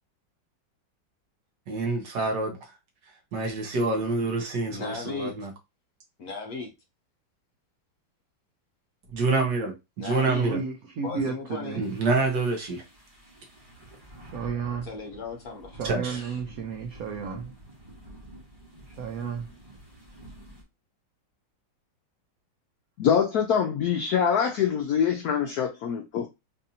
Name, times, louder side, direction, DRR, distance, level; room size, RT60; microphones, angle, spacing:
voice 1, 1.7-2.6 3.3-5.5 9.1-10.6 11.8-12.8 15.8-16.2, right 3 dB, 65° right, 1.5 m, -27 dB
voice 2, 4.7-5.3 6.2-6.7 10.0-10.5 11.0-11.8 14.8-16.4, left 4 dB, 60° left, 1.1 m, -37 dB
voice 3, 10.4-11.8 14.3-14.9 15.8-17.5 19.0-19.5, right 6 dB, 80° right, 0.8 m, -32 dB
sound 1, 11.8-20.6, right 1 dB, 20° right, 1.2 m, -48 dB
voice 4, 23.0-26.3, left 7 dB, 80° left, 0.8 m, -24 dB
4.1 x 2.6 x 2.7 m
omnidirectional pair, 2.1 m